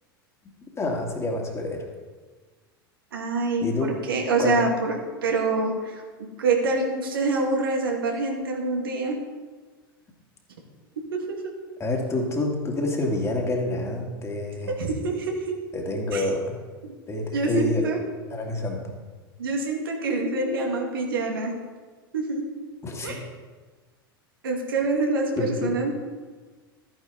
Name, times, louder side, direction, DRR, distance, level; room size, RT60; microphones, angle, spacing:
voice 1, 0.8-1.9 3.6-4.0 4.4-4.6 11.8-14.7 15.7-16.6 17.1-17.9 18.3-18.9 22.8-23.2 25.4-25.7, left 2 dB, 20° left, 1 dB, 2.4 m, -27 dB
voice 2, 3.1-5.0 5.2-6.0 6.4-9.2 11.1-11.5 14.8-15.6 16.1-16.2 17.3-18.0 19.4-21.5 22.1-22.5 23.0-23.2 24.4-25.9, right 3 dB, 70° right, 1 dB, 2.2 m, -26 dB
13.5 x 9.5 x 4.1 m, 1.4 s
figure-of-eight pair, 85°, 12 cm